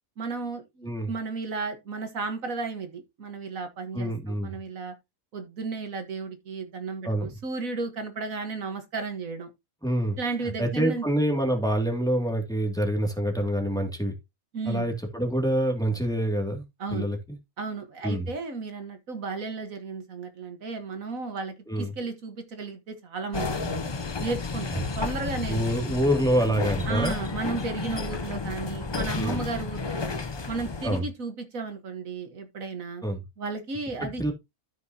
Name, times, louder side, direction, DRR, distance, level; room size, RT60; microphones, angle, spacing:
voice 1, 0.2-4.9 5.3-9.5 10.2-11.0 14.5-14.9 16.8-17.1 17.6-23.9 24.2-25.6 26.9-30.1 30.5-33.0 33.4-34.2, right 4 dB, 70° right, 1.8 m, -34 dB
voice 2, 3.9-4.6 7.0-7.4 9.8-14.1 14.7-16.6 16.9-17.4 18.0-18.3 21.7-21.9 25.5-27.2 29.1-29.5 30.8-31.0 33.0-33.2 34.0-34.3, right 1 dB, 5° left, 2.2 m, -26 dB
sound 1, 23.3-31.0, left 4 dB, 45° left, 0.3 m, -32 dB
13.5 x 6.1 x 2.8 m
omnidirectional pair, 1.5 m